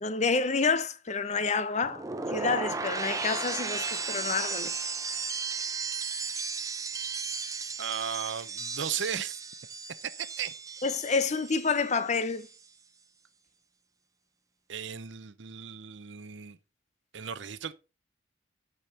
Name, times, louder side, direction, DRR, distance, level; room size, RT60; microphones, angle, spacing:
voice 1, 0.0-2.0 2.3-4.7 10.8-12.5, left 4 dB, 35° left, 0.6 m, -28 dB
sound 1, 1.8-11.9 12.2-12.7, right 5 dB, 15° right, 0.6 m, -35 dB
voice 2, 7.8-9.4 10.0-10.5 14.7-16.6 17.1-17.7, right 8 dB, 65° right, 0.7 m, -35 dB
12.0 x 5.2 x 4.2 m
head